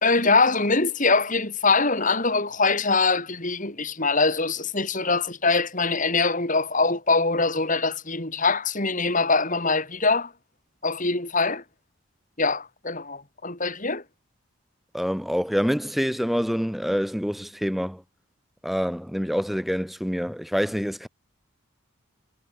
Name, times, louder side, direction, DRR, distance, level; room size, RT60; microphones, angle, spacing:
voice 1, 0.0-10.3 10.8-11.6 12.4-14.0, left 3 dB, 35° left, 4.5 m, -23 dB
voice 2, 14.9-18.0 18.6-21.1, equal, ahead, 2.5 m, -26 dB
head